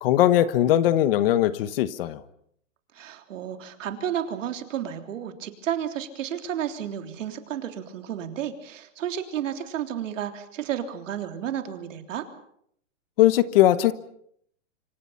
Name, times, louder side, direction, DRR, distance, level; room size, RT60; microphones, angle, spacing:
voice 1, 0.0-2.2 13.2-13.9, left 13 dB, 45° left, 14 dB, 1.3 m, -20 dB
voice 2, 3.0-12.2, right 9 dB, 75° right, 6 dB, 3.5 m, -32 dB
26.0 x 26.0 x 5.8 m, 0.68 s
supercardioid pair, 160°, 39 cm